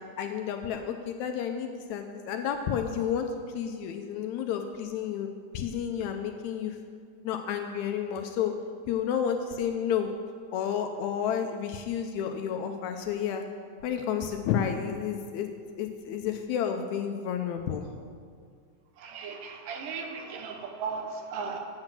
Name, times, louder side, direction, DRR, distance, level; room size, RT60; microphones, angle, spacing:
voice 1, 0.2-6.8 7.2-8.5 8.9-10.1 10.5-13.4 13.8-15.5 15.8-17.9, left 8 dB, 80° left, 5 dB, 1.8 m, -31 dB
voice 2, 19.0-21.6, right 5 dB, 85° right, 3 dB, 2.7 m, -36 dB
8.8 x 7.4 x 7.4 m, 2.1 s
omnidirectional pair, 3.7 m